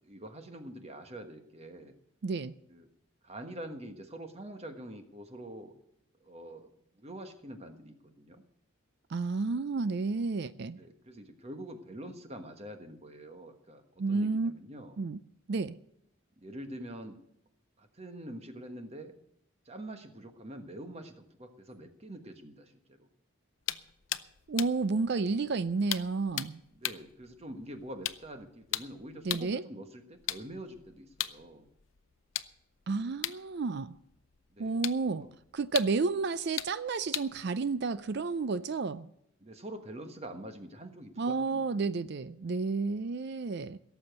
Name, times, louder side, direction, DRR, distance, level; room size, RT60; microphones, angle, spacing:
voice 1, 0.0-1.9 2.7-2.9 3.2-5.7 6.2-6.7 7.0-8.4 10.8-15.0 16.4-17.2 17.8-19.1 19.6-23.1 26.7-31.7 34.5-34.8 35.1-35.3 39.4-41.7, right 1 dB, 30° right, 1.3 m, -45 dB
voice 2, 2.2-2.5 9.1-10.8 14.0-14.5 15.0-15.2 15.5-15.8 24.5-26.6 29.2-29.6 32.9-33.9 34.6-35.3 35.5-39.1 41.2-43.8, right 4 dB, 50° right, 0.4 m, -31 dB
sound 1, 23.6-29.6 30.1-38.6, left 13 dB, 70° left, 0.6 m, -40 dB
17.5 x 7.1 x 8.0 m
head